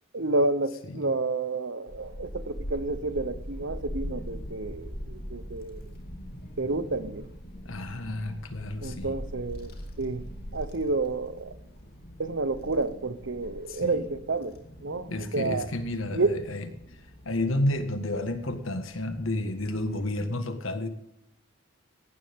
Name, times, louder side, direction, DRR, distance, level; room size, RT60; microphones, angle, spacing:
voice 1, 0.1-5.8 6.6-7.2 8.8-9.7 10.0-10.2 10.5-11.5 12.2-14.5 14.8-15.7 16.1-16.4, right 3 dB, 65° right, 15 dB, 0.9 m, -30 dB
Child speech kid speaking / Wind, 1.9-20.2, equal, 50° left, 2.3 m, -42 dB
voice 2, 7.7-9.2 13.7-14.1 15.1-16.7 17.3-20.9, left 1 dB, 75° left, 8 dB, 1.7 m, -31 dB
17.5 x 12.5 x 3.6 m, 0.83 s
head